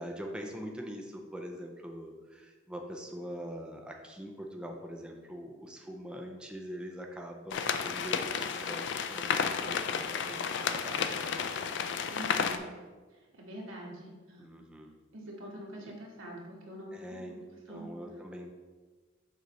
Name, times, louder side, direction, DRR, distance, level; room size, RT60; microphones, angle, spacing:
voice 1, 0.0-11.6 14.4-15.0 15.8-15.9 16.9-18.5, equal, 5° right, 1 dB, 0.4 m, -43 dB
sound 1, 7.5-12.6, left 6 dB, 60° left, 0.4 m, -32 dB
voice 2, 12.1-12.7 13.1-14.4 15.1-17.9, right 1 dB, 85° right, -2 dB, 1.5 m, -45 dB
6.7 x 4.9 x 3.1 m, 1.3 s
head